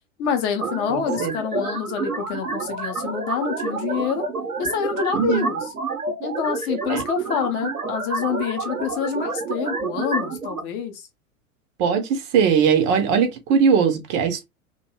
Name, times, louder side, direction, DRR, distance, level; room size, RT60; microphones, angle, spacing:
voice 1, 0.2-4.2 4.6-5.6 6.2-11.1, left 7 dB, 30° left, 0.6 m, -27 dB
sound 1, 0.6-10.6, right 4 dB, 85° right, 0.8 m, -29 dB
voice 2, 0.9-1.3 5.1-5.5 6.9-7.0 11.8-14.4, right 6 dB, 30° right, 0.6 m, -20 dB
2.5 x 2.2 x 2.8 m
figure-of-eight pair, 95°, 43 cm